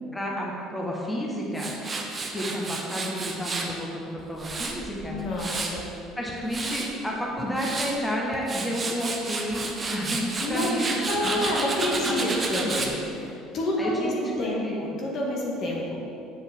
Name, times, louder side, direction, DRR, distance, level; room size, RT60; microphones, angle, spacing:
voice 1, 0.1-1.7 2.3-5.2 6.1-10.9 11.2-11.6 12.0-13.0 13.8-14.1 14.4-14.8, equal, 10° left, -3 dB, 1.5 m, -31 dB
Tools, 1.6-3.7 4.2-5.8 6.3-6.9 7.4-7.9 8.3-12.9, right 3 dB, 25° right, 1.1 m, -31 dB
voice 2, 5.1-5.8 10.4-10.7 11.1-12.9 13.2-16.0, left 1 dB, 50° left, -3 dB, 1.5 m, -28 dB
8.3 x 7.9 x 3.7 m, 2.7 s
figure-of-eight pair, 60°, 0 cm